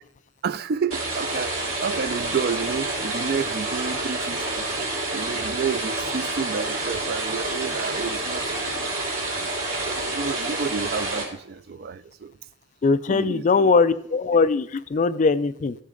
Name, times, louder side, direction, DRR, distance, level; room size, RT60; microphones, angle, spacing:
voice 1, 0.4-1.6 1.8-4.5 5.1-8.6 9.3-12.3 13.1-13.7, right 6 dB, 50° right, 0.3 m, -30 dB
sound 1, 0.9-11.2, right 2 dB, 85° right, 3.4 m, -28 dB
voice 2, 12.8-15.7, left 4 dB, 35° left, 0.3 m, -20 dB
14.5 x 6.5 x 3.8 m
head